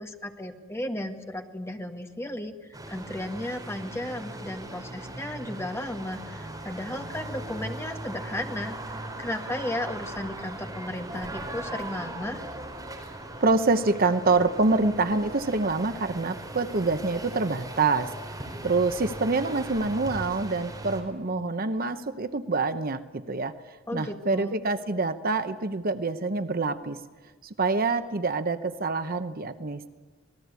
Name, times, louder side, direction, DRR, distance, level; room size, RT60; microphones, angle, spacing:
voice 1, 0.0-2.5 2.9-12.4 23.9-24.5, left 1 dB, 15° left, 4 dB, 1.8 m, -34 dB
sound 1, 2.7-21.0, right 1 dB, 20° right, 4.6 m, -39 dB
voice 2, 13.4-18.1 18.6-23.5 23.9-27.0 27.4-29.9, right 3 dB, 45° right, 10 dB, 0.9 m, -26 dB
27.0 x 19.5 x 8.3 m, 1.4 s
head